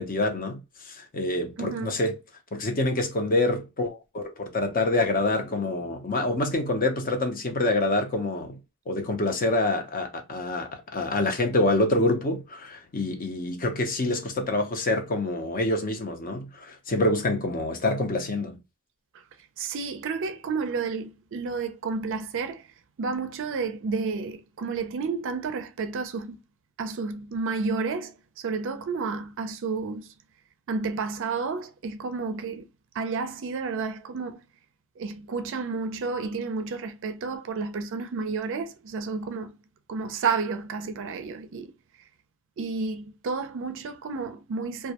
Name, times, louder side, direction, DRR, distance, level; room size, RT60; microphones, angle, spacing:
voice 1, 0.0-2.1 2.5-8.6 8.9-18.6, left 2 dB, 40° left, 0.6 m, -26 dB
voice 2, 1.6-2.0 19.6-22.7 23.0-26.4 26.8-30.1 30.7-32.7 32.9-34.4 35.0-39.5 39.9-41.7 42.6-44.9, right 4 dB, 60° right, 0.4 m, -31 dB
2.3 x 2.1 x 2.7 m
head